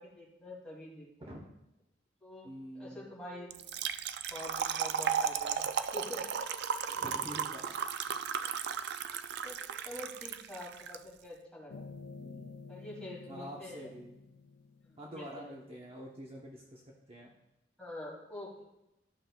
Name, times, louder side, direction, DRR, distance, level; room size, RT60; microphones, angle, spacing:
voice 1, 0.0-1.3 2.2-2.5 2.7-3.5 4.3-6.2 6.9-7.1 8.3-8.6 9.4-9.6 9.8-11.8 12.7-13.9 14.8-15.5 17.8-18.8, left 1 dB, 5° left, -5 dB, 2.5 m, -46 dB
voice 2, 2.4-3.0 6.9-7.7 8.1-8.4 12.2-12.5 13.3-14.2 15.0-17.3, equal, 30° right, -2 dB, 0.9 m, -47 dB
Trickle dribble / Fill (with liquid), 3.5-11.0, right 7 dB, 65° right, 0.4 m, -35 dB
sound 1, 11.7-15.3, left 4 dB, 65° left, 0.4 m, -50 dB
12.5 x 6.2 x 2.3 m, 0.89 s
head